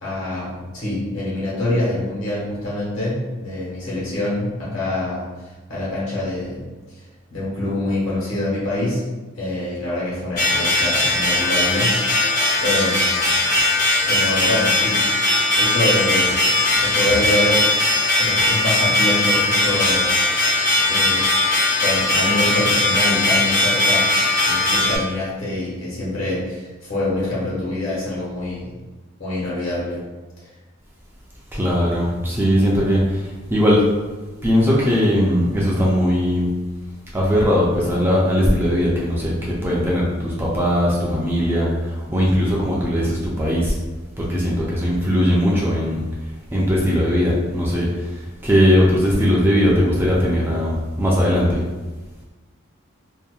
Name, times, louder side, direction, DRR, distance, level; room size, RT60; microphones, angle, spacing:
voice 1, 0.0-5.3 5.7-6.6 7.3-9.0 9.4-12.0 12.6-13.4 14.1-16.4 16.7-17.7 18.2-20.6 20.9-21.2 21.8-24.1 24.4-28.7 29.2-30.0, left 1 dB, 70° left, -7 dB, 1.2 m, -25 dB
sound 1, 10.4-25.0, left 2 dB, 40° left, 0.6 m, -19 dB
voice 2, 31.5-33.9 34.4-36.5 37.1-43.8 44.2-46.0 46.5-51.7, equal, 10° right, -5 dB, 0.3 m, -19 dB
2.7 x 2.2 x 2.3 m, 1.2 s
head